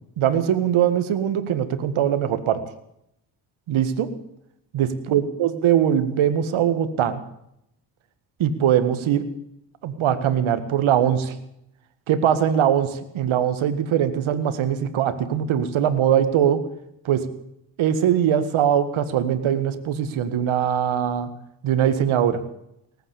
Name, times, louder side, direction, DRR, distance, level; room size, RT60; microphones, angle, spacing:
voice 1, 0.2-2.6 3.7-4.1 4.7-7.2 8.4-9.2 9.8-11.4 12.1-16.6 17.1-17.3 17.8-21.3 21.6-22.4, right 9 dB, 70° right, 12 dB, 1.9 m, -21 dB
19.0 x 9.2 x 8.4 m, 0.78 s
supercardioid pair, 55°, 49 cm